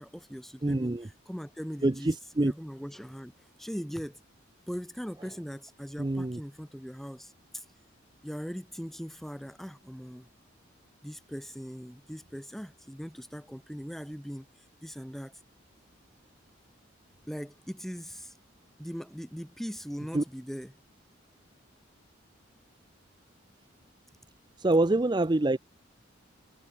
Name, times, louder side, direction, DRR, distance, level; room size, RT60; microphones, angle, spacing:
voice 1, 0.0-2.1 2.4-4.2 4.6-7.7 8.2-10.3 11.0-14.5 14.8-15.3 17.3-18.3 18.8-20.7, equal, ahead, 2.4 m, -40 dB
voice 2, 0.6-1.1 1.8-2.5 6.0-6.4 20.1-20.2 24.6-25.6, right 2 dB, 20° right, 0.5 m, -26 dB
head